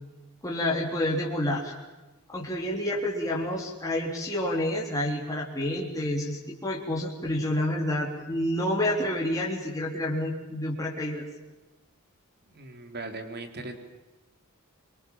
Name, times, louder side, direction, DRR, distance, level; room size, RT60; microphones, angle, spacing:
voice 1, 0.4-1.8 2.3-11.3, left 1 dB, 15° left, -3 dB, 3.7 m, -29 dB
voice 2, 12.5-13.7, right 2 dB, 45° right, 6 dB, 3.8 m, -39 dB
25.5 x 23.5 x 7.5 m, 1.1 s
head